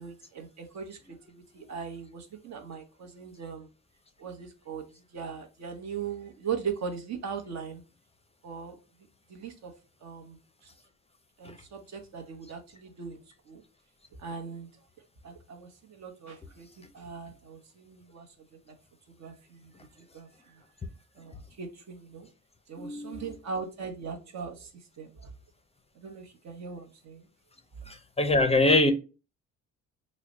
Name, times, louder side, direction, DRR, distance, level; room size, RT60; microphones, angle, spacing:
voice 1, 0.0-3.7 4.2-4.8 5.1-7.8 8.4-8.8 9.3-9.7 10.0-10.7 11.4-13.6 14.2-14.7 15.2-18.8 19.1-20.6 21.1-22.3 22.7-25.3 25.9-27.3, right 6 dB, 60° right, 0.9 m, -40 dB
voice 2, 22.8-23.2 27.9-28.9, left 2 dB, 20° left, 0.4 m, -24 dB
3.1 x 2.1 x 3.7 m
cardioid pair, 90°, 30 cm